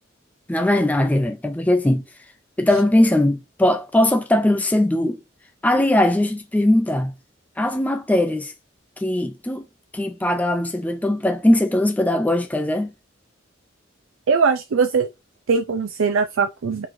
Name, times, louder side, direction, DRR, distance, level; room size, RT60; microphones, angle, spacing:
voice 1, 0.5-2.0 2.6-5.2 5.6-7.1 7.6-8.5 9.0-9.6 9.9-12.9, left 1 dB, 10° left, 0.3 m, -20 dB
voice 2, 14.3-15.1 15.5-16.9, right 5 dB, 85° right, 0.5 m, -20 dB
4.6 x 3.8 x 2.6 m
head